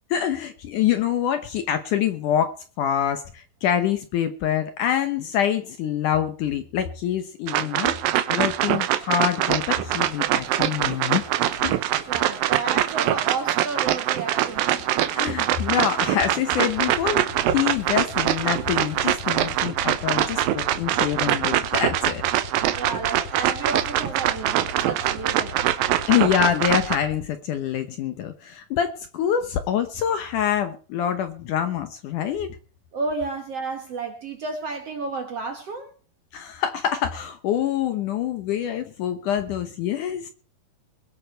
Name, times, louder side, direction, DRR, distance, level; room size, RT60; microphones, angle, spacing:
voice 1, 0.1-8.0 8.3-11.2 11.6-11.8 15.1-22.2 26.1-32.6 36.3-40.3, left 9 dB, 70° left, 2.1 m, -25 dB
sound 1, 7.5-27.0, right 13 dB, 75° right, 2.4 m, -23 dB
sound 2, 9.8-19.6, left 1 dB, 25° left, 7.0 m, -46 dB
voice 2, 12.1-15.1 22.8-25.6 32.9-35.9, right 4 dB, 55° right, 1.9 m, -31 dB
sound 3, 16.7-27.3, left 5 dB, 50° left, 3.1 m, -39 dB
22.0 x 8.5 x 4.5 m
omnidirectional pair, 4.6 m